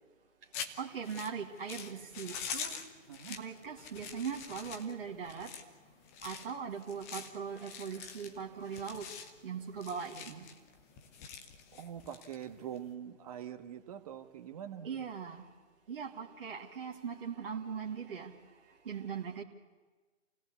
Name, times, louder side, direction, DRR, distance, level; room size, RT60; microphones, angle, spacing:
sound 1, 0.5-12.9, left 7 dB, 10° left, 0.7 m, -45 dB
voice 1, 0.8-2.8 3.3-5.5 6.2-9.1 9.4-10.5 14.8-15.5 15.9-18.4 18.9-19.4, right 6 dB, 45° right, 2.3 m, -40 dB
voice 2, 11.8-15.0, right 9 dB, 30° right, 1.4 m, -44 dB
28.0 x 17.5 x 8.3 m
figure-of-eight pair, 140°, 38 cm